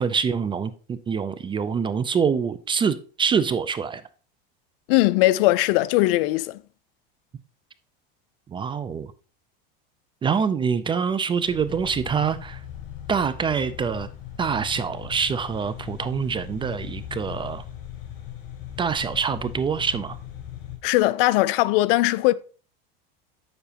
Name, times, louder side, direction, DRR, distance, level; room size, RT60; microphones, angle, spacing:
voice 1, 0.0-4.0 8.5-9.1 10.2-12.6 13.1-14.1 14.4-17.6 18.8-20.2, right 6 dB, 20° right, 0.3 m, -25 dB
voice 2, 4.9-6.6 20.8-22.3, left 18 dB, 70° left, 0.5 m, -20 dB
sound 1, 11.5-20.8, left 9 dB, 55° left, 3.3 m, -39 dB
7.8 x 7.0 x 2.8 m
supercardioid pair, 120°, 29 cm